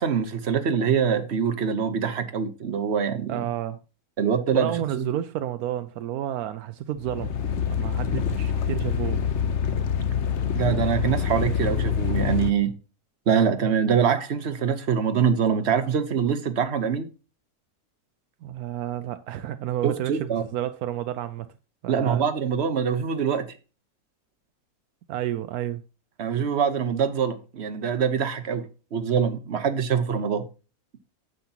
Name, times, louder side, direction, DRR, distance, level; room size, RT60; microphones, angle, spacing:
voice 1, 0.0-3.5 4.2-5.0 10.5-12.7 13.3-17.1 19.8-20.5 21.9-23.5 26.2-30.5, right 7 dB, 50° right, 1.2 m, -24 dB
voice 2, 3.3-3.8 4.5-7.3 7.7-9.2 18.4-21.5 21.8-22.2 25.1-25.8, right 12 dB, 85° right, 1.1 m, -30 dB
sound 1, 7.0-12.5, left 7 dB, 55° left, 1.1 m, -26 dB
9.4 x 8.1 x 2.8 m
omnidirectional pair, 1.5 m